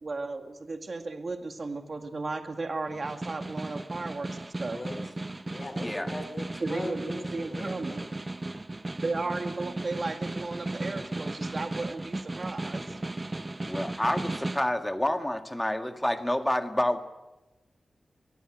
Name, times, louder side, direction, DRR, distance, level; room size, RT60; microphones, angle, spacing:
voice 1, 0.0-4.8 6.6-8.0 9.0-12.8, right 3 dB, 45° right, 6 dB, 2.0 m, -35 dB
Snare drum, 2.9-14.7, right 2 dB, 25° right, 0.8 m, -36 dB
voice 2, 4.7-5.0 5.4-8.1 12.8-13.0, left 2 dB, 35° left, 8 dB, 3.8 m, -40 dB
voice 3, 5.8-6.1 13.7-17.0, left 1 dB, 10° left, 7 dB, 1.8 m, -28 dB
23.5 x 17.0 x 9.2 m, 1.1 s
wide cardioid pair, 100°, 0 cm